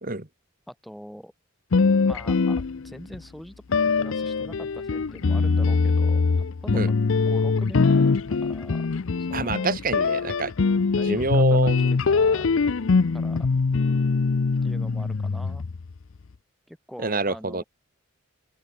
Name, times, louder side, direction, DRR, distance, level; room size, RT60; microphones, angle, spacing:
voice 1, 0.7-1.3 2.0-3.5 4.0-6.9 7.3-8.1 8.4-8.8 9.2-9.7 10.9-12.5 13.1-13.5 14.6-15.7 16.7-17.6, equal, ahead, 6.5 m, -42 dB
sound 1, 1.7-3.2 3.7-15.9, left 4 dB, 70° left, 0.6 m, -22 dB
voice 2, 9.3-10.5 11.1-11.9 17.0-17.6, right 3 dB, 40° right, 2.1 m, -26 dB
open air
head